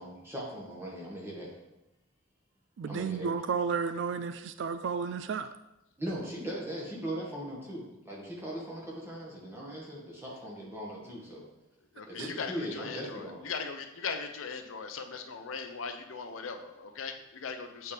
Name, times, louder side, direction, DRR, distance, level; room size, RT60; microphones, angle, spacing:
voice 1, 0.0-1.5 2.9-3.3 6.0-11.5 12.1-13.4, right 1 dB, 10° right, -4 dB, 1.4 m, -39 dB
voice 2, 2.8-5.5 12.2-12.3, right 6 dB, 65° right, 11 dB, 0.3 m, -32 dB
voice 3, 12.0-17.9, left 5 dB, 80° left, 6 dB, 0.6 m, -39 dB
8.2 x 4.3 x 3.3 m, 0.94 s
head